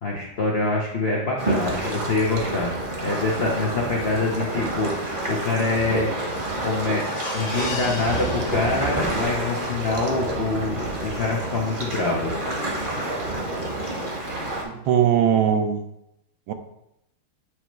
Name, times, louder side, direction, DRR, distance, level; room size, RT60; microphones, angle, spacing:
voice 1, 0.0-2.7 3.0-6.1 6.6-12.3, left 3 dB, 70° left, -2 dB, 0.6 m, -25 dB
sound 1, 1.4-14.6, right 2 dB, 35° right, 0.9 m, -28 dB
sound 2, 7.0-9.3 9.7-9.8 10.2-10.3, left 3 dB, 40° left, 1.0 m, -36 dB
voice 2, 14.6-15.8 16.5-16.6, right 9 dB, 75° right, 7 dB, 1.4 m, -20 dB
7.9 x 3.1 x 4.5 m, 0.83 s
omnidirectional pair, 2.3 m